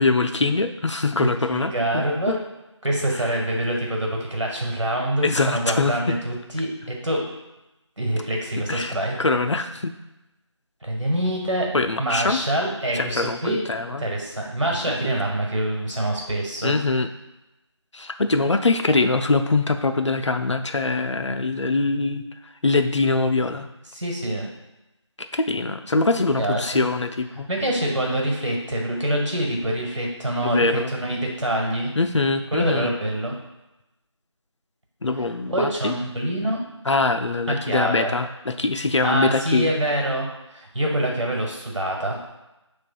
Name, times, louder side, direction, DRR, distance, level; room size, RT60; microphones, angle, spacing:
voice 1, 0.0-2.4 5.2-6.2 8.6-10.0 11.7-12.4 12.9-14.1 15.0-15.2 16.6-17.1 17.9-22.2 22.6-23.7 25.3-27.5 30.4-30.9 32.0-32.9 35.0-35.9 36.9-39.7, left 3 dB, 70° left, 6 dB, 0.4 m, -23 dB
voice 2, 1.2-2.4 2.8-7.2 8.0-9.2 10.8-11.7 12.0-13.6 14.0-16.8 23.9-24.5 25.7-25.8 26.4-26.9 27.5-31.9 32.5-33.4 35.5-36.6 37.5-38.1 39.0-42.2, right 1 dB, 75° right, 0 dB, 1.5 m, -25 dB
6.6 x 3.3 x 2.3 m, 0.97 s
figure-of-eight pair, 180°, 16 cm